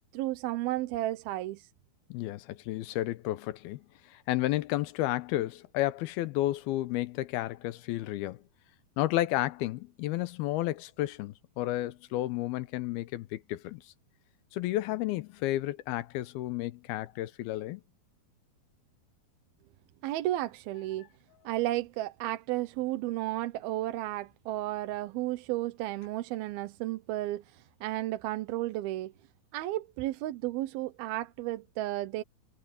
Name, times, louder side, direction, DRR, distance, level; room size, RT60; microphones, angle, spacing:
voice 1, 0.1-1.7 20.0-21.1 21.4-29.1 29.5-32.2, right 16 dB, 80° right, 2.7 m, -33 dB
voice 2, 2.1-3.8 4.1-8.4 9.0-13.8 14.5-17.8, left 16 dB, 90° left, 2.8 m, -32 dB
omnidirectional pair, 4.4 m